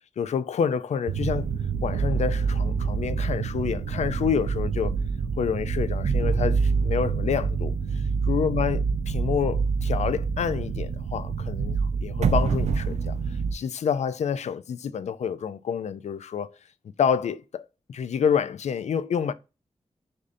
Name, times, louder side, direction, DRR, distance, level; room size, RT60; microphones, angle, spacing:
voice 1, 0.2-1.5 1.8-4.9 5.4-7.7 8.3-13.1 13.5-16.5 17.0-19.3, left 7 dB, 75° left, 0.4 m, -28 dB
sound 1, 1.1-13.5, right 5 dB, 75° right, 0.4 m, -26 dB
6.5 x 2.7 x 2.6 m
wide cardioid pair, 165°, 12 cm